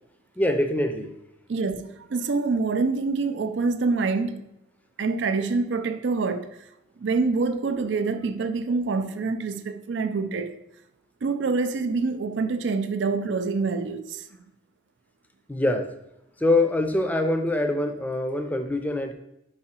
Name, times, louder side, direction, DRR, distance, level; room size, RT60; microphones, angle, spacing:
voice 1, 0.4-1.1 15.5-15.9 16.4-19.1, left 1 dB, 10° left, 0.5 m, -24 dB
voice 2, 1.5-4.5 5.0-6.6 7.0-10.5 11.2-14.2, right 4 dB, 75° right, 0.4 m, -26 dB
4.8 x 4.7 x 4.3 m
head